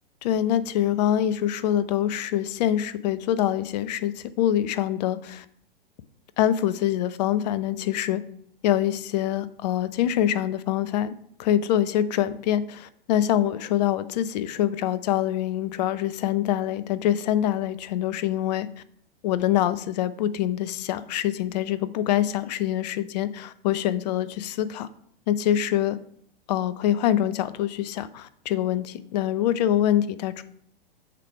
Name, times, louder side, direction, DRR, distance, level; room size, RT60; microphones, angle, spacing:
voice 1, 0.2-5.4 6.4-8.2 8.6-18.7 19.2-24.9 25.3-26.0 26.5-30.4, left 11 dB, 45° left, 15 dB, 0.6 m, -25 dB
7.5 x 3.3 x 5.5 m, 0.65 s
figure-of-eight pair, 105°, 29 cm